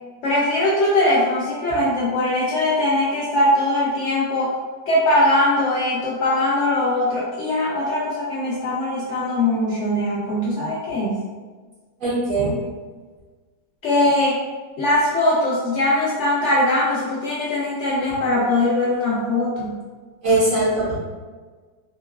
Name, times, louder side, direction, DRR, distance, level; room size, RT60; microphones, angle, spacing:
voice 1, 0.2-4.6 4.9-11.2 13.8-14.4 14.8-19.8, left 1 dB, 80° left, -6 dB, 0.6 m, -21 dB
voice 2, 12.0-12.5 20.2-20.9, right 2 dB, 55° right, -11 dB, 1.3 m, -20 dB
3.8 x 2.2 x 2.2 m, 1.4 s
omnidirectional pair, 1.9 m